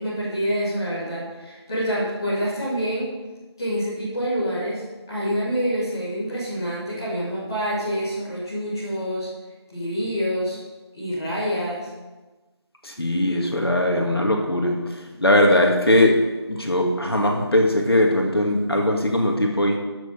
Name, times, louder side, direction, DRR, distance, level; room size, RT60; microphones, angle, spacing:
voice 1, 0.0-3.1 3.6-9.3 9.7-10.6 10.9-11.9, equal, 10° left, -11 dB, 1.6 m, -27 dB
voice 2, 12.8-16.2 16.5-19.8, left 1 dB, 60° left, 1 dB, 2.3 m, -20 dB
13.5 x 7.1 x 5.5 m, 1.2 s
figure-of-eight pair, 170°, 14 cm